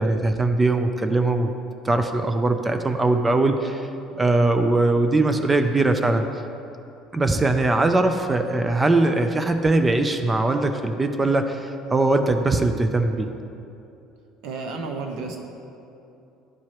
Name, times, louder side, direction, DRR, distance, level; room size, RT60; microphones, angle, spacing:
voice 1, 0.0-1.5 1.8-3.9 4.2-6.3 7.1-13.3, right 2 dB, 15° right, 6 dB, 0.4 m, -21 dB
voice 2, 14.4-15.4, right 3 dB, 70° right, 3 dB, 1.0 m, -31 dB
11.5 x 4.7 x 3.0 m, 2.8 s
cardioid pair, 120°, 0 cm